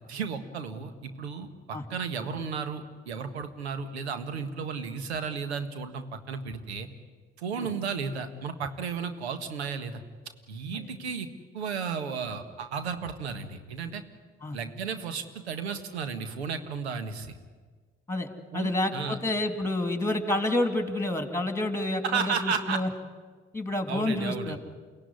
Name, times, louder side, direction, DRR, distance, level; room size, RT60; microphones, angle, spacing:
voice 1, 0.0-6.9 7.4-10.0 10.5-11.3 11.5-14.0 14.5-17.4 18.5-19.2 22.0-22.8 23.9-24.6, right 6 dB, 80° right, 9 dB, 1.6 m, -33 dB
voice 2, 18.1-22.9 23.5-24.6, left 2 dB, 10° left, 7 dB, 3.2 m, -29 dB
29.5 x 16.5 x 9.8 m, 1.5 s
figure-of-eight pair, 50°, 32 cm